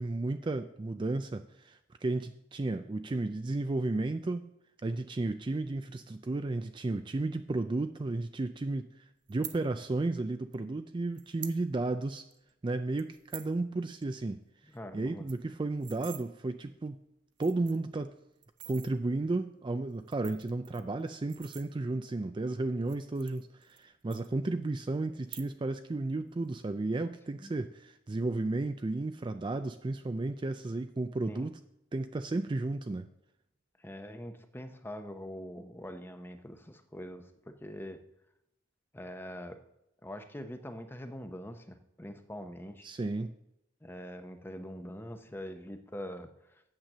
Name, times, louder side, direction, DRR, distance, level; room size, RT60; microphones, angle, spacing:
voice 1, 0.0-4.5 4.8-8.9 9.3-12.2 12.6-14.4 14.9-17.0 17.4-18.1 18.7-31.6 31.9-33.0 42.8-43.3, right 2 dB, 25° right, 9 dB, 0.4 m, -33 dB
sound 1, 9.3-9.6 10.5-10.6 11.2-11.6 12.0-12.1 12.3-12.5 13.0-13.5 13.9-14.0 14.3-14.4 14.7-14.8 15.1-16.2 16.9-17.0 17.3-17.9 18.4-18.9 19.9-22.1 22.8-23.8 24.1-24.7 25.2-25.8 26.1-26.5, right 12 dB, 65° right, 0.8 m, -47 dB
voice 2, 14.7-15.2 27.4-27.5 31.3-31.5 33.8-38.0 38.9-39.6 40.0-42.9 43.8-46.6, equal, 10° left, 8 dB, 0.7 m, -43 dB
8.8 x 7.5 x 6.7 m, 0.86 s
head